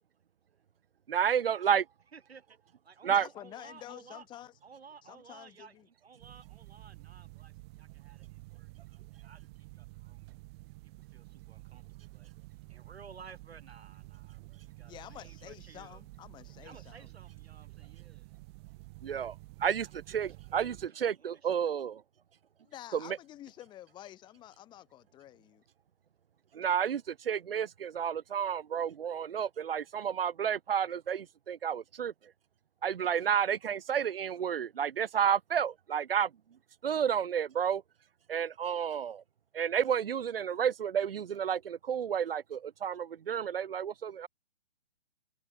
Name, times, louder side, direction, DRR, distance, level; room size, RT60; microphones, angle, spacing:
voice 1, 1.1-1.8 3.0-3.3 19.0-19.3 19.6-22.0 22.9-23.2 26.5-32.1 32.8-36.3 36.8-37.8 38.3-39.2 39.5-44.3, right 8 dB, 65° right, 1.1 m, -31 dB
voice 2, 2.1-2.6 2.8-4.3 4.6-9.5 9.7-10.3 11.0-12.3 12.7-16.0 16.6-18.3 19.9-20.8 21.2-21.7, right 5 dB, 85° right, 3.7 m, -56 dB
voice 3, 3.1-4.5 5.0-5.9 14.9-17.1 22.6-25.6, left 13 dB, 15° left, 5.4 m, -49 dB
sound 1, 6.2-20.9, right 25 dB, 25° right, 5.2 m, -51 dB
hypercardioid pair, 160°, 31 cm